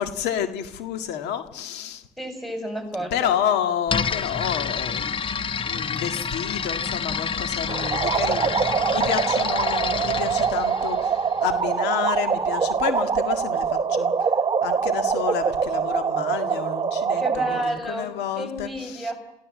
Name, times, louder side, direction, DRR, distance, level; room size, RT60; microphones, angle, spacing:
voice 1, 0.0-2.0 3.1-5.2 5.7-14.1 14.6-19.1, left 9 dB, 85° left, 8 dB, 1.9 m, -30 dB
voice 2, 2.2-3.3 17.2-19.1, right 1 dB, ahead, 5 dB, 6.6 m, -30 dB
sound 1, 3.9-11.7, left 6 dB, 30° left, 0.9 m, -29 dB
sound 2, 7.7-17.7, right 6 dB, 30° right, 1.0 m, -24 dB
28.0 x 16.0 x 7.6 m, 0.93 s
cardioid pair, 110°, 17 cm